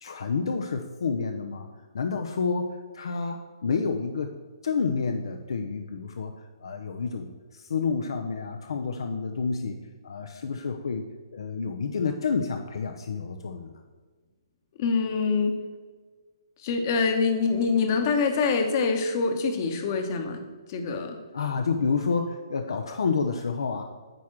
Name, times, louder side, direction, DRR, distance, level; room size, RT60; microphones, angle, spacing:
voice 1, 0.0-1.7 1.9-4.3 4.6-6.3 6.6-9.8 10.0-11.1 11.3-13.7 21.3-23.8, left 5 dB, 65° left, 5 dB, 0.6 m, -29 dB
voice 2, 14.8-15.5 16.6-20.4 20.7-21.2, left 4 dB, 40° left, 5 dB, 1.1 m, -25 dB
9.0 x 3.6 x 6.0 m, 1.4 s
figure-of-eight pair, 135°, 3 cm